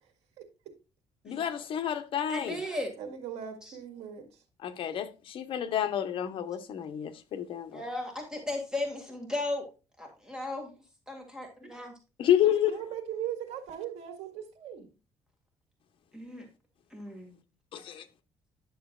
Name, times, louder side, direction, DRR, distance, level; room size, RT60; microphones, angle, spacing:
voice 1, 1.2-2.6 4.6-7.8 12.2-12.7 17.7-18.1, left 10 dB, 55° left, 0.9 m, -29 dB
voice 2, 2.3-2.9 3.6-3.7 7.7-9.6 10.0-10.7 11.1-11.9 16.1-16.5 16.9-17.4, left 1 dB, 5° right, 1.9 m, -36 dB
voice 3, 3.0-4.3 12.4-14.9, right 9 dB, 75° right, 1.9 m, -39 dB
10.5 x 6.6 x 2.3 m
cardioid pair, 145°, 11 cm